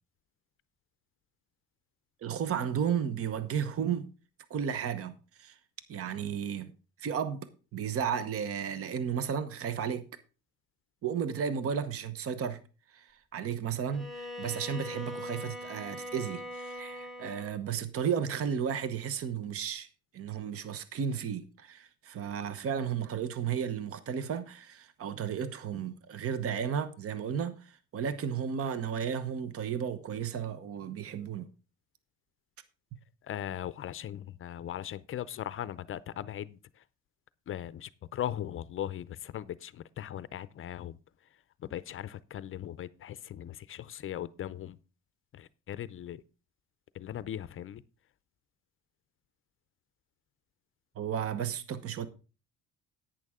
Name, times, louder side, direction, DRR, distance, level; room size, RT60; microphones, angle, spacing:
voice 1, 2.2-4.1 4.5-5.6 5.9-6.7 7.0-10.1 11.0-12.6 12.9-19.9 20.1-31.5 51.0-52.1, right 7 dB, 50° right, 1.0 m, -33 dB
Bowed string instrument, 13.9-17.6, left 1 dB, ahead, 1.2 m, -41 dB
voice 2, 33.3-36.6 37.5-41.0 41.7-44.8 45.3-46.2 46.9-47.8, left 11 dB, 45° left, 0.5 m, -39 dB
10.5 x 9.1 x 3.6 m
cardioid pair, 115°, 30 cm